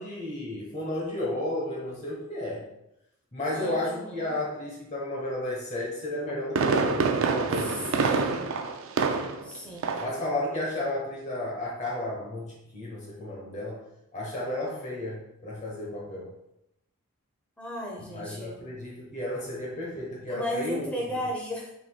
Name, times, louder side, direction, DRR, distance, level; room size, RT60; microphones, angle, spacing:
voice 1, 0.0-2.6 3.3-8.0 10.0-13.8 14.1-16.3 18.1-20.9, left 1 dB, 30° left, -4 dB, 1.0 m, -33 dB
voice 2, 3.5-4.3 7.6-8.4 9.4-9.8 17.6-18.6 20.3-21.7, equal, 5° left, -2 dB, 0.8 m, -35 dB
Fireworks, 6.1-9.5 9.8-10.2 10.5-10.6, right 4 dB, 65° right, 0.4 m, -26 dB
4.8 x 3.9 x 2.3 m, 0.83 s
head